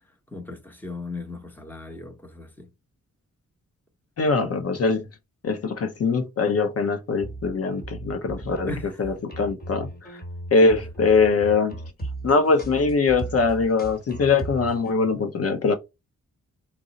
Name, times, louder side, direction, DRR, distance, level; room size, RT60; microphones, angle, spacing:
voice 1, 0.3-2.7 8.7-9.0, left 3 dB, 5° left, 0.8 m, -36 dB
voice 2, 4.2-5.1 5.4-8.7 9.0-9.9 10.5-11.8 12.2-15.7, left 4 dB, 50° left, 0.6 m, -22 dB
sound 1, 7.2-14.9, right 2 dB, 30° left, 1.2 m, -37 dB
3.7 x 2.0 x 3.8 m
wide cardioid pair, 110°, 30 cm